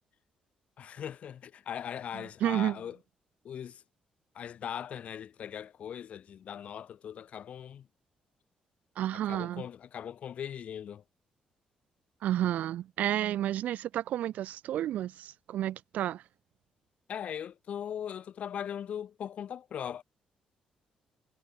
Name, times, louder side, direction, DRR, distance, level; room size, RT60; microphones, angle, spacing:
voice 1, 0.8-3.0 3.4-3.8 4.3-7.9 9.1-11.0 17.1-20.0, left 9 dB, 55° left, 5.7 m, -39 dB
voice 2, 2.1-2.8 9.0-9.7 12.2-16.2, right 12 dB, 80° right, 1.8 m, -31 dB
cardioid pair, 130°, 3 cm